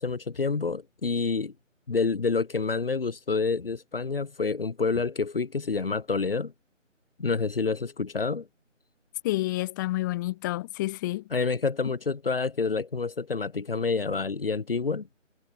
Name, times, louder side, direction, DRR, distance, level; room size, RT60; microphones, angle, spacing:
voice 1, 0.0-1.5 1.9-6.5 7.2-8.5 11.3-15.1, left 4 dB, 45° left, 3.5 m, -28 dB
voice 2, 9.2-11.2, left 17 dB, 15° left, 5.1 m, -29 dB
figure-of-eight pair, 155°, 39 cm